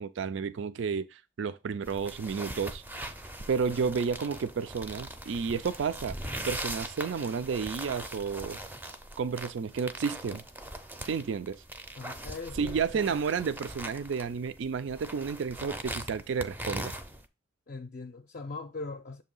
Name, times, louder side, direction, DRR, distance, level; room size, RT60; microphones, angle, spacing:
voice 1, 0.0-2.8 3.5-6.1 6.5-8.6 9.2-10.4 11.0-11.6 12.6-16.9, right 6 dB, 80° right, 0.4 m, -31 dB
sound 1, 1.8-17.3, right 1 dB, 10° right, 0.5 m, -41 dB
voice 2, 3.6-3.9 11.9-13.2 17.7-19.2, left 3 dB, 45° left, 0.5 m, -41 dB
7.0 x 2.8 x 5.4 m
head